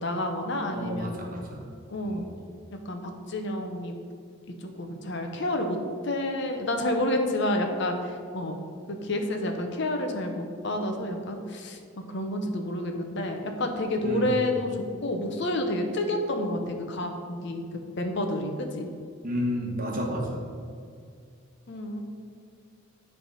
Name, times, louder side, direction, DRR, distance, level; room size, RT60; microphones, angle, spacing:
voice 1, 0.0-1.2 1.9-2.2 2.9-3.9 4.8-5.8 6.0-8.0 8.3-8.6 8.9-17.6 18.0-18.9 21.7-22.0, left 1 dB, 55° left, 4 dB, 0.8 m, -29 dB
voice 2, 0.7-1.6 2.1-2.2 14.0-14.2 19.2-20.2, equal, 40° right, 0 dB, 1.2 m, -31 dB
10.0 x 3.5 x 5.5 m, 2.2 s
head